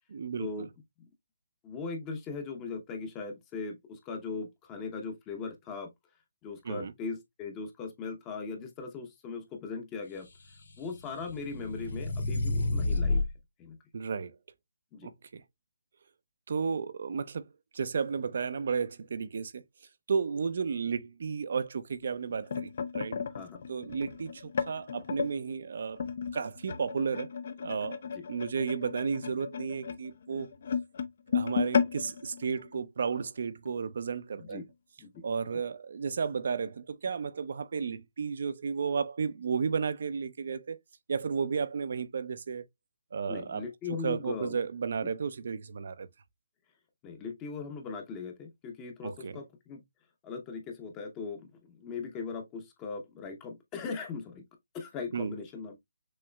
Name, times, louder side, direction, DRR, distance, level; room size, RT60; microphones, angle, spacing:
voice 1, 0.1-0.5 6.7-6.9 13.9-14.4 15.0-15.4 16.5-17.5 17.7-19.6 20.1-23.2 23.7-26.0 26.3-27.3 27.6-28.0 28.3-30.5 31.3-34.6 35.2-40.8 41.1-42.7 43.1-43.6 44.0-46.1 49.0-49.4 55.1-55.3, right 5 dB, 60° right, 0.6 m, -33 dB
voice 2, 1.6-5.9 6.4-10.3 10.8-13.2 13.6-13.8 14.9-15.1 23.3-23.7 28.1-28.2 34.4-34.6 35.0-35.2 35.5-35.6 43.3-44.6 45.0-45.1 47.0-49.8 50.2-54.4 54.7-55.8, left 4 dB, 15° left, 0.8 m, -39 dB
sound 1, 10.3-13.3, left 2 dB, 75° left, 2.3 m, -30 dB
sound 2, 22.0-25.3 26.0-33.3 33.7-33.9 34.1-34.4 35.2-35.3, left 6 dB, 55° left, 0.7 m, -34 dB
6.4 x 2.9 x 2.3 m
hypercardioid pair, 160°, 0 cm